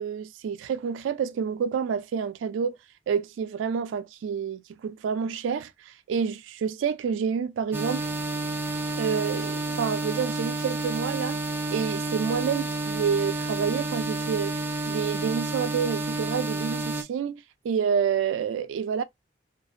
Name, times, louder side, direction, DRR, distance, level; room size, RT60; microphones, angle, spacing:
voice 1, 0.0-2.8 3.1-8.1 8.9-11.4 11.7-14.5 14.9-19.0, right 7 dB, 90° right, 0.3 m, -28 dB
sound 1, 7.7-17.0, right 2 dB, 10° right, 0.4 m, -30 dB
2.5 x 2.0 x 2.4 m
head